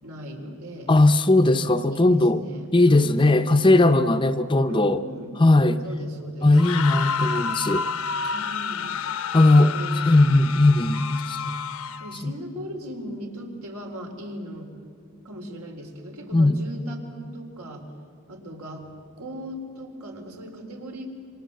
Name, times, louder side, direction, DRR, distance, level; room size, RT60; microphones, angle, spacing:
voice 1, 0.0-0.9 1.9-3.4 4.7-5.3 5.8-6.6 8.2-9.0 9.7-10.2 10.5-10.6 12.0-14.7 15.2-17.8 18.3-21.1, equal, 80° right, 2 dB, 3.9 m, -38 dB
voice 2, 0.9-2.4 2.7-5.0 5.4-5.8 6.4-7.9 9.3-9.7 10.1-11.6 12.2-12.3 16.3-16.6, left 2 dB, 20° left, 9 dB, 0.6 m, -18 dB
sound 1, 6.5-12.2, left 6 dB, 75° left, 0.9 m, -30 dB
28.0 x 25.0 x 7.6 m, 2.3 s
head